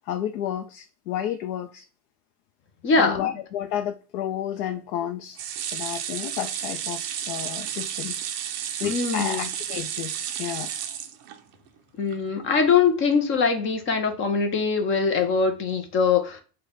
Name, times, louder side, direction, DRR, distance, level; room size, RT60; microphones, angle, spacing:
voice 1, 0.0-1.8 3.0-5.4 5.7-8.2 8.8-10.7, left 10 dB, 75° left, 0.6 m, -31 dB
voice 2, 2.8-3.3 8.8-9.4 12.0-16.4, left 5 dB, 25° left, 0.5 m, -22 dB
sound 1, 5.4-11.7 12.1-12.2 12.5-12.6, right 9 dB, 35° right, 0.4 m, -32 dB
3.2 x 2.2 x 3.7 m
supercardioid pair, 130°, 47 cm